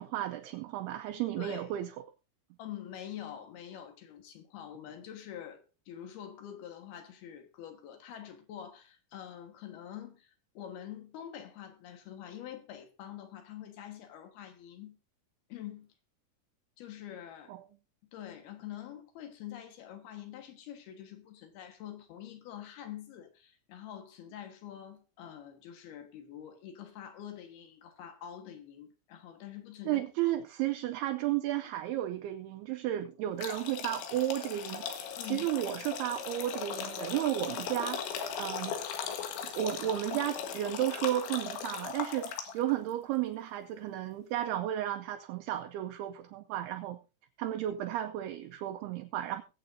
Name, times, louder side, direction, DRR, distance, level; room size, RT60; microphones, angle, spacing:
voice 1, 0.0-1.9 17.5-17.7 29.9-34.9 35.3-38.0 38.4-38.8 39.6-47.0 47.4-49.4, right 13 dB, 80° right, 2.4 m, -33 dB
voice 2, 1.4-1.7 2.6-15.0 15.5-15.9 16.8-17.6 18.1-30.0 35.2-35.5, left 10 dB, 70° left, 3.2 m, -46 dB
sound 1, 33.4-42.7, left 7 dB, 85° left, 3.9 m, -38 dB
22.5 x 7.7 x 2.7 m
omnidirectional pair, 5.1 m